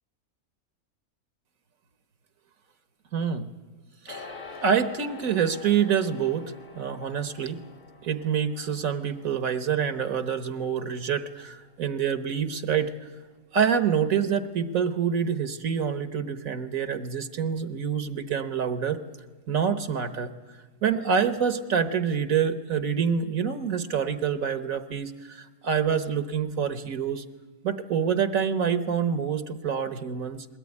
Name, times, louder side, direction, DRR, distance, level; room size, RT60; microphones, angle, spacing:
voice 1, 3.1-3.5 4.0-4.3 4.6-7.6 8.0-12.9 13.5-19.0 19.5-20.3 20.8-27.2 27.6-30.5, right 7 dB, 65° right, 11 dB, 1.4 m, -26 dB
sound 1, 4.1-13.6, left 4 dB, 55° left, 2.9 m, -48 dB
21.5 x 18.0 x 9.7 m, 1.4 s
omnidirectional pair, 1.6 m